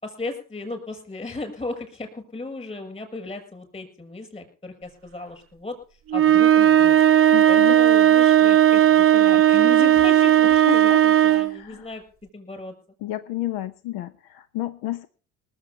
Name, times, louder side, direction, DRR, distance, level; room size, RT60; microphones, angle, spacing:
voice 1, 0.0-5.8 6.1-7.0 7.5-12.0 12.3-12.7, left 2 dB, 15° left, 5 dB, 6.5 m, -35 dB
sound 1, 6.1-11.6, right 11 dB, 35° right, 0.6 m, -16 dB
voice 2, 7.3-7.8 10.7-11.0 11.3-11.9 13.0-15.1, left 14 dB, 90° left, 12 dB, 0.9 m, -31 dB
19.5 x 7.8 x 6.8 m, 0.43 s
cardioid pair, 115°, 37 cm